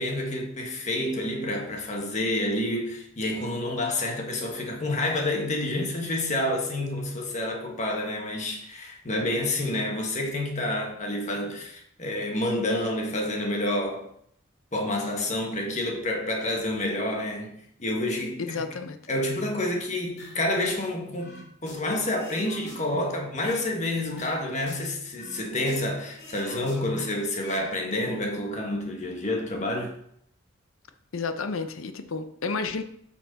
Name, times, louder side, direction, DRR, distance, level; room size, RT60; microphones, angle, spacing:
voice 1, 0.0-14.1 14.7-18.7 19.1-29.9, left 1 dB, 35° left, 1.5 m, -29 dB
voice 2, 18.4-19.0 31.1-32.8, left 4 dB, 80° left, 0.7 m, -31 dB
sound 1, 20.2-20.8 21.2-23.7 24.1-25.9 26.2-27.7 27.9-28.2, left 2 dB, 55° left, 2.4 m, -45 dB
8.8 x 6.0 x 4.1 m
head